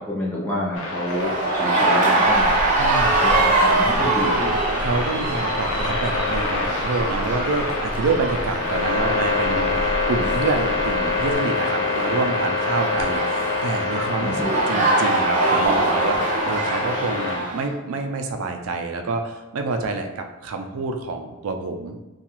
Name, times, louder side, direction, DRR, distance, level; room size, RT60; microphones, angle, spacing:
voice 1, 0.1-2.5 3.1-4.6 14.2-14.8, left 1 dB, 10° left, -6 dB, 0.5 m, -28 dB
sound 1, 0.7-17.4, left 3 dB, 65° left, 0.5 m, -26 dB
sound 2, 1.1-17.7, right 2 dB, 35° right, 0.6 m, -24 dB
sound 3, 2.2-11.4, equal, 45° left, 1.0 m, -34 dB
voice 2, 2.8-3.2 4.0-9.8 10.1-22.0, right 3 dB, 90° right, 5 dB, 0.4 m, -27 dB
2.8 x 2.3 x 2.9 m, 1.1 s
head